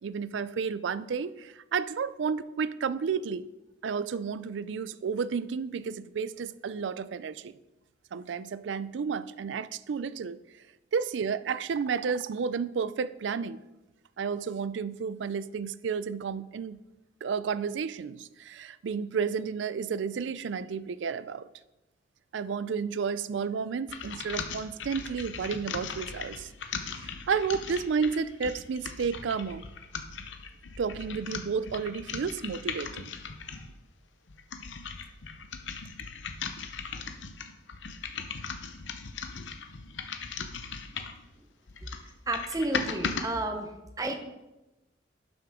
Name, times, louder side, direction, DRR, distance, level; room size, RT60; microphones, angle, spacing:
voice 1, 0.0-3.4 3.8-7.5 8.1-10.4 10.9-13.6 14.2-16.8 17.2-21.5 22.3-26.5 27.0-29.6 30.8-33.1, right 6 dB, 80° right, 15 dB, 0.4 m, -32 dB
sound 1, 23.9-33.7 34.3-41.2 41.7-43.3, left 5 dB, 90° left, 0.8 m, -38 dB
voice 2, 42.3-43.7 44.0-44.2, right 2 dB, 20° right, 6 dB, 0.8 m, -31 dB
11.5 x 6.2 x 3.7 m, 1.0 s
head